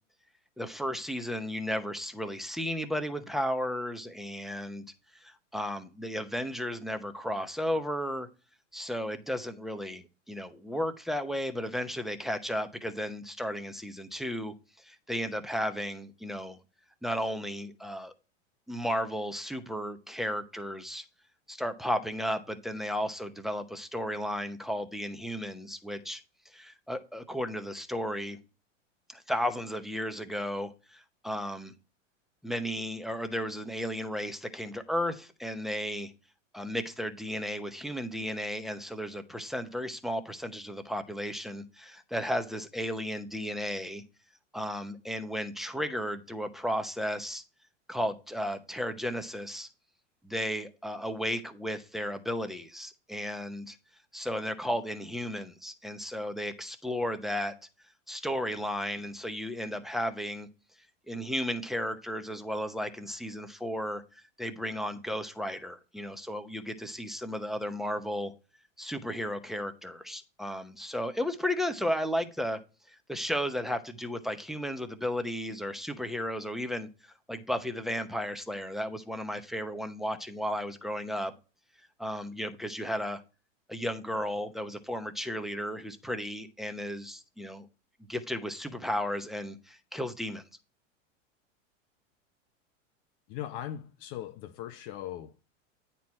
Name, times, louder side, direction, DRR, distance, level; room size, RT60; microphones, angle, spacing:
voice 1, 0.6-4.8 5.1-8.3 8.7-16.6 17.0-18.1 18.7-21.0 21.5-26.2 26.5-28.4 29.1-31.7 32.4-36.1 36.5-44.0 44.5-47.4 47.9-49.7 50.2-53.8 54.1-57.5 58.1-60.5 61.1-68.3 68.8-72.6 72.9-81.3 82.0-83.2 83.7-87.7 88.1-90.4, equal, ahead, 0.8 m, -34 dB
voice 2, 93.3-95.5, left 11 dB, 45° left, 0.7 m, -39 dB
9.3 x 4.5 x 4.3 m
hypercardioid pair, 105°, 38 cm